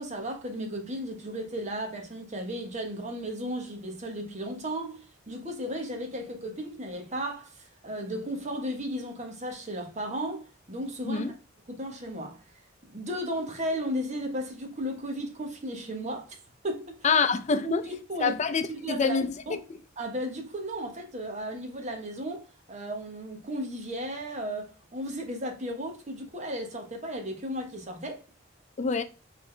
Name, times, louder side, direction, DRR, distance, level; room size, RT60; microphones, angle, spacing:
voice 1, 0.0-11.4 11.7-12.4 12.8-16.4 16.6-17.0 17.6-18.4 18.7-19.6 20.0-28.2, equal, 40° right, 1.2 m, -35 dB
voice 2, 17.0-17.9 18.2-19.4 19.7-19.8 28.8-29.0, left 5 dB, 35° left, 0.5 m, -26 dB
4.1 x 4.0 x 3.2 m
head